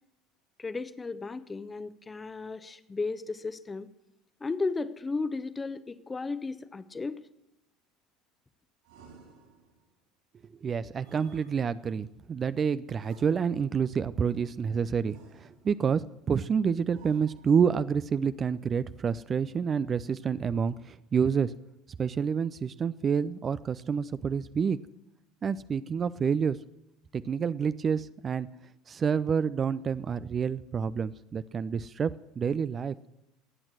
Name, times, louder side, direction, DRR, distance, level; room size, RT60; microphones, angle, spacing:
voice 1, 0.6-3.9 4.4-7.1, left 3 dB, 20° left, 13 dB, 0.9 m, -34 dB
sound 1, 8.8-9.9 11.0-12.0 12.9-13.9 15.0-15.9 16.9-17.8, right 4 dB, 60° right, 4.5 m, -55 dB
voice 2, 10.5-21.5 22.0-24.8 25.4-26.6 27.1-28.5 28.9-32.9, right 6 dB, 30° right, 15 dB, 0.5 m, -28 dB
22.0 x 8.9 x 6.3 m, 0.89 s
figure-of-eight pair, 70°, 0 cm